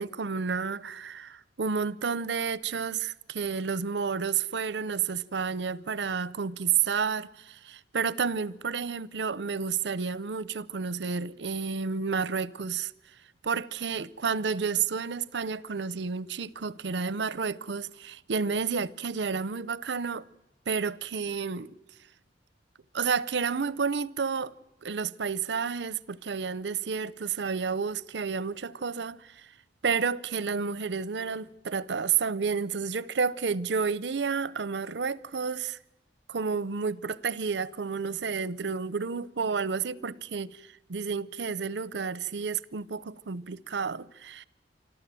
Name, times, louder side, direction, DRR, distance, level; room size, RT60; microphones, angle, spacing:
voice 1, 0.0-12.9 13.4-20.3 20.7-21.8 22.9-24.5 24.8-29.5 29.8-35.8 36.3-40.6 40.9-44.4, right 5 dB, 75° right, 0.6 m, -30 dB
25.5 x 13.5 x 7.6 m
head